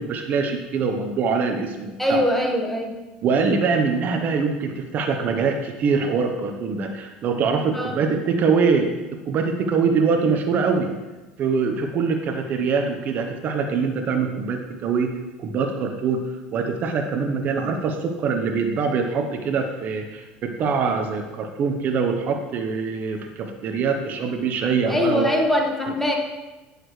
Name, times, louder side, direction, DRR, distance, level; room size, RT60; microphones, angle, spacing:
voice 1, 0.0-2.2 3.2-10.9 11.4-15.1 15.4-16.2 16.5-25.3, right 5 dB, 50° right, 4 dB, 0.9 m, -23 dB
voice 2, 2.0-2.9 7.7-8.0 24.9-26.2, left 1 dB, 5° left, 1 dB, 1.5 m, -22 dB
9.8 x 6.6 x 3.2 m, 1.1 s
supercardioid pair, 90°, 4 cm